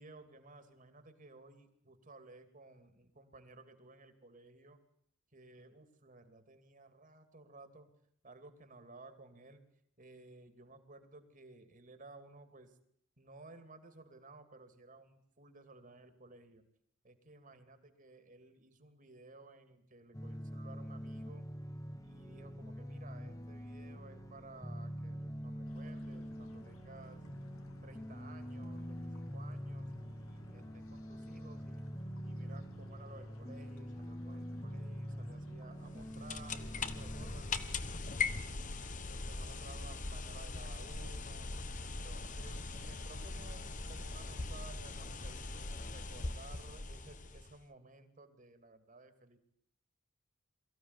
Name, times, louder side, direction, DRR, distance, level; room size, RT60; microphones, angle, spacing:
voice 1, 0.0-4.8 5.3-7.9 8.2-9.6 10.0-12.8 13.2-16.6 17.0-21.5 22.0-27.2 27.8-31.8 32.2-37.5 38.1-41.5 41.8-49.4, right 3 dB, 40° right, 9 dB, 2.7 m, -57 dB
sound 1, 20.1-37.4, equal, 15° left, 1.2 m, -45 dB
sound 2, 25.6-44.8, left 2 dB, 80° left, 2.0 m, -60 dB
sound 3, 35.8-47.6, left 3 dB, 35° left, 1.2 m, -41 dB
23.5 x 15.0 x 9.8 m, 0.67 s
head